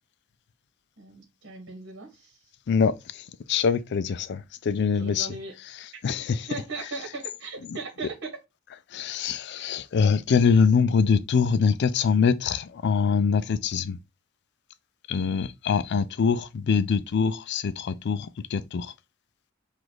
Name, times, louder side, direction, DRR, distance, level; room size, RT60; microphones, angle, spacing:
voice 1, 1.0-2.4 4.9-5.6 6.5-8.4, right 3 dB, 60° right, 1.5 m, -38 dB
voice 2, 2.7-5.3 6.0-6.5 8.9-14.0 15.1-18.9, left 5 dB, 55° left, 0.4 m, -24 dB
4.8 x 2.5 x 3.9 m
head